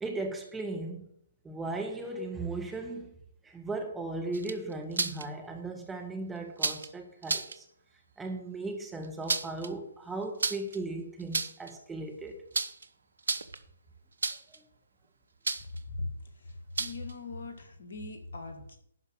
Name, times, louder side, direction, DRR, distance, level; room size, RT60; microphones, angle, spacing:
voice 1, 0.0-1.1 1.4-3.1 3.4-7.7 8.2-12.4 14.5-14.6, right 2 dB, 10° right, 2 dB, 1.7 m, -37 dB
sound 1, 4.3-5.2 6.6-6.9 7.2-7.6 9.0-9.7 10.4-10.8 11.2-11.7 12.5-12.9 13.2-13.6 14.2-14.6 15.4-15.8 16.8-17.1, right 4 dB, 70° right, 0.9 m, -32 dB
voice 2, 16.8-18.8, left 3 dB, 60° left, 6 dB, 2.1 m, -39 dB
11.5 x 5.1 x 7.8 m, 0.68 s
figure-of-eight pair, 130°, 0 cm